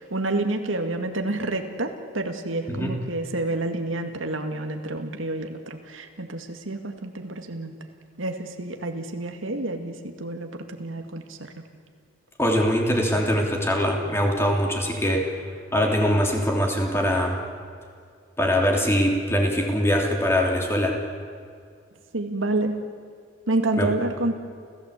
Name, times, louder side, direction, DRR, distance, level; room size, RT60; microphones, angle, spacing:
voice 1, 0.0-7.7 8.2-11.6 22.1-22.8 23.5-24.3, right 2 dB, 80° right, 5 dB, 2.2 m, -29 dB
voice 2, 12.4-15.3 15.7-17.4 18.4-21.0 23.8-23.9, equal, 15° left, 1 dB, 3.2 m, -22 dB
29.5 x 15.5 x 8.4 m, 2.1 s
head